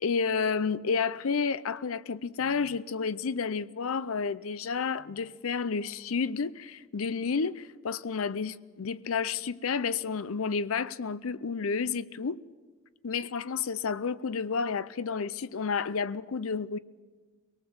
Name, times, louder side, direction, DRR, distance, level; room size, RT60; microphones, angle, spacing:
voice 1, 0.0-12.4 13.0-16.8, left 5 dB, 75° left, 0.6 m, -31 dB
23.0 x 19.0 x 7.1 m
head